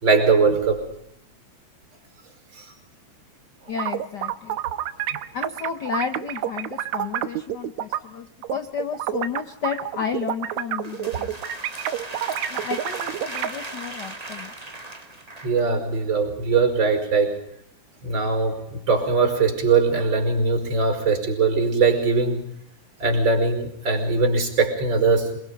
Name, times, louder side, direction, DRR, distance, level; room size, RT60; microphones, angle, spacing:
voice 1, 0.0-0.8 2.6-2.7 11.1-11.3 15.4-17.4 18.0-22.4 23.0-25.4, right 4 dB, 35° right, 5 dB, 5.8 m, -21 dB
voice 2, 3.7-4.6 5.3-11.3 12.5-14.5 16.1-16.2, left 7 dB, 70° left, 8 dB, 1.0 m, -32 dB
sound 1, 3.7-8.0 8.4-13.5, right 11 dB, 75° right, 2.3 m, -28 dB
sound 2, 10.6-15.7, right 2 dB, 15° right, 1.4 m, -37 dB
28.0 x 22.0 x 5.3 m, 0.72 s
omnidirectional pair, 3.4 m